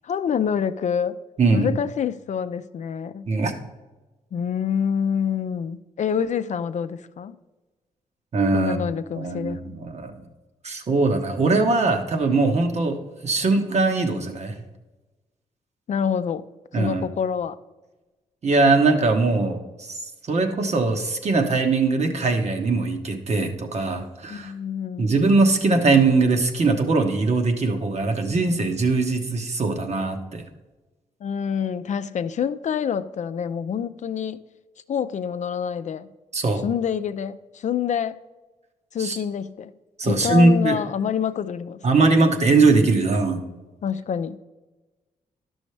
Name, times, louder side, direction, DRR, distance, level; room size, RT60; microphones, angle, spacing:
voice 1, 0.0-1.2 1.5-3.3 4.3-7.4 8.5-9.6 15.9-16.5 16.7-17.6 24.3-25.1 31.2-34.4 34.9-36.1 36.6-38.2 38.9-39.7 40.0-41.8 42.1-42.3 43.8-44.4, left 7 dB, 55° left, 12 dB, 0.4 m, -26 dB
voice 2, 1.4-1.7 3.3-3.5 8.3-8.8 9.2-10.2 10.6-14.5 16.7-17.1 18.4-20.0 20.3-24.5 25.0-30.4 36.3-36.7 39.0-39.2 40.0-40.8 41.8-43.4, right 3 dB, 50° right, 5 dB, 1.2 m, -21 dB
11.5 x 6.2 x 3.3 m, 1.2 s
cardioid pair, 85°, 14 cm